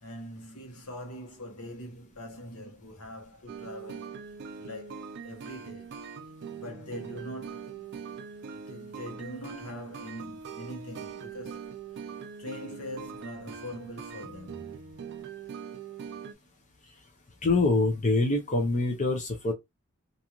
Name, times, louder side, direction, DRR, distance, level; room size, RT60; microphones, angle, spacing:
voice 1, 0.0-4.2 4.6-5.9 6.6-7.9 8.5-11.7 12.4-15.0, left 1 dB, 80° left, 1.1 m, -43 dB
sound 1, 3.5-16.3, right 6 dB, 50° right, 0.4 m, -42 dB
voice 2, 17.4-19.5, left 2 dB, 35° left, 0.6 m, -25 dB
2.6 x 2.5 x 2.9 m
head